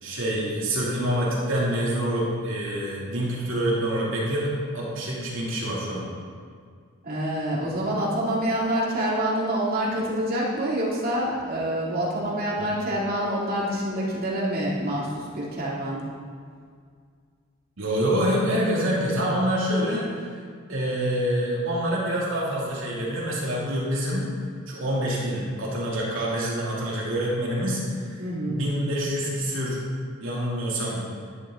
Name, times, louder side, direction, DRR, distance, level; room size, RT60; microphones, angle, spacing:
voice 1, 0.0-6.1 12.6-12.7 17.8-20.0 20.7-24.3 24.7-28.1 28.5-29.8 30.2-31.1, equal, 65° right, -5 dB, 2.9 m, -26 dB
voice 2, 7.0-16.0 28.2-28.6, right 1 dB, 45° right, -6 dB, 2.9 m, -26 dB
12.0 x 12.0 x 3.9 m, 2.1 s
head